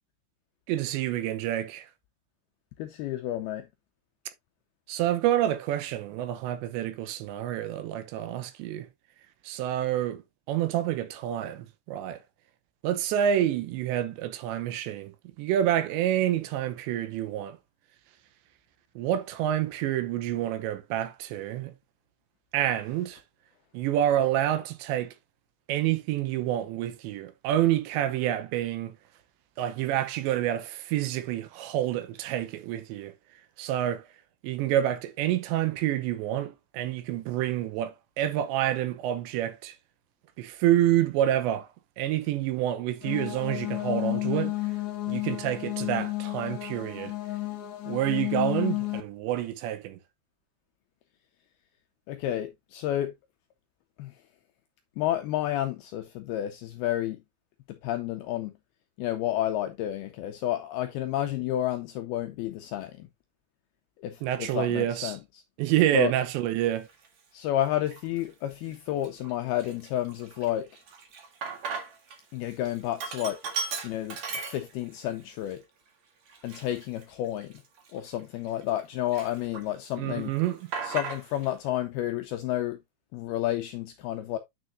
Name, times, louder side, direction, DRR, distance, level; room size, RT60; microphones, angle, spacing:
voice 1, 0.7-1.8 4.9-8.9 9.5-10.2 10.5-12.2 12.8-15.1 15.4-17.6 19.0-21.7 22.5-23.2 23.7-25.1 25.7-28.9 29.6-33.1 33.6-34.0 34.4-39.7 40.4-41.7 42.0-44.5 45.1-47.1 47.9-50.0 64.2-65.2 65.6-66.9 80.0-80.6, right 12 dB, 80° right, 3.0 m, -28 dB
voice 2, 2.8-3.7 52.1-53.1 54.0-54.1 55.0-57.2 57.8-58.5 59.0-63.1 64.0-65.2 65.9-66.1 67.3-70.7 72.3-73.4 73.8-75.6 76.4-77.5 77.9-80.3 80.8-82.8 83.1-84.4, left 12 dB, 85° left, 2.2 m, -30 dB
sound 1, 43.0-49.0, left 18 dB, 70° left, 1.9 m, -31 dB
Sink (filling or washing), 66.9-67.1 67.7-68.3 68.7-68.8 69.0-72.2 72.5-75.0 75.5-75.6 76.3-78.8 79.1-79.9 80.2-81.5, right 5 dB, 50° right, 2.3 m, -37 dB
9.3 x 6.4 x 2.6 m
omnidirectional pair, 5.2 m